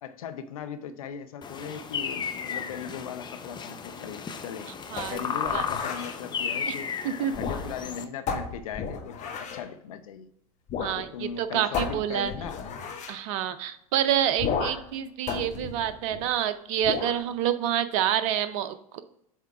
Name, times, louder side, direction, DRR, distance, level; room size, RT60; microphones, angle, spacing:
voice 1, 0.0-4.7 5.0-6.9 7.2-10.3 10.9-12.6, left 7 dB, 75° left, 9 dB, 0.7 m, -38 dB
sound 1, 1.4-8.0, left 6 dB, 25° left, 0.6 m, -34 dB
sound 2, 5.0-6.2 7.3-7.9 8.3-9.7 10.7-11.0 11.3-11.4 11.7-13.2 14.4-14.9 15.3-16.4 16.8-17.2, left 6 dB, 40° left, 1.2 m, -33 dB
voice 2, 10.8-12.3 13.1-19.0, right 10 dB, 55° right, 11 dB, 0.6 m, -28 dB
7.4 x 3.5 x 4.6 m, 0.72 s
hypercardioid pair, 80°, 18 cm